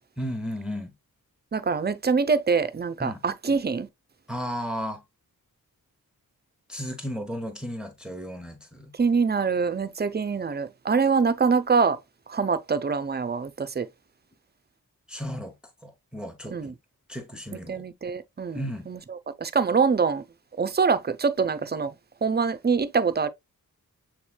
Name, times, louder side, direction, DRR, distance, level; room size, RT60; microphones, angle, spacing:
voice 1, 0.2-0.9 3.0-3.2 4.3-5.0 6.7-8.9 15.1-15.5 15.8-16.7 17.1-17.8 18.5-18.9, equal, ahead, 0.9 m, -34 dB
voice 2, 1.5-3.9 8.9-12.0 12.3-13.9 16.5-16.7 17.5-20.2 20.6-21.9 22.2-23.3, right 5 dB, 30° right, 0.4 m, -25 dB
7.0 x 3.0 x 2.2 m
wide cardioid pair, 70°, 36 cm